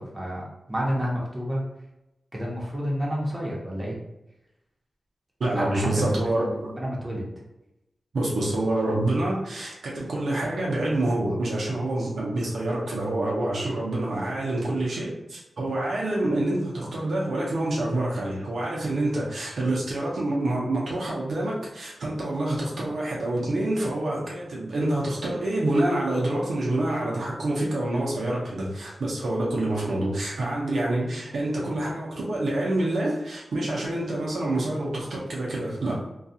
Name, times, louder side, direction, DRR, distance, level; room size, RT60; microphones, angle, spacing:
voice 1, 0.0-1.6 2.3-3.9 5.5-7.3, equal, 25° right, -4 dB, 0.9 m, -30 dB
voice 2, 5.4-6.7 8.1-36.0, right 1 dB, 80° right, -4 dB, 0.6 m, -27 dB
2.4 x 2.3 x 2.7 m, 0.92 s
cardioid pair, 50°, 0 cm